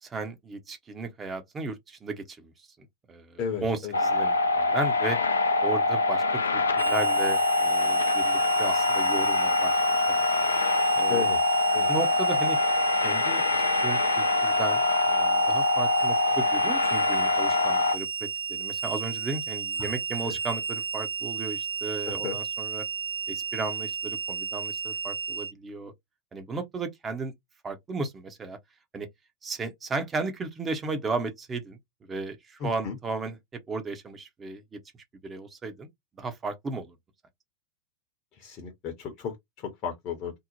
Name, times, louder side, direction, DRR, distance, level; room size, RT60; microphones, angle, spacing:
voice 1, 0.0-2.7 3.1-5.2 5.6-10.2 11.0-11.3 11.9-12.6 13.0-13.4 13.8-14.8 15.1-22.9 23.3-25.9 26.3-27.3 27.6-28.6 28.9-29.1 29.4-31.8 32.1-33.4 33.7-34.6 35.2-35.9 36.2-37.0, right 3 dB, 20° right, 0.6 m, -35 dB
voice 2, 3.4-3.9 11.1-11.4 11.7-11.9 19.8-19.9 20.2-20.3 22.1-22.4 32.6-32.9 38.4-39.3 39.6-40.3, left 7 dB, 35° left, 0.7 m, -33 dB
sound 1, 3.9-18.0, left 3 dB, 75° left, 0.3 m, -24 dB
Harmonica, 6.8-25.5, right 6 dB, 85° right, 0.5 m, -33 dB
2.6 x 2.0 x 2.9 m
figure-of-eight pair, 90°, 0 cm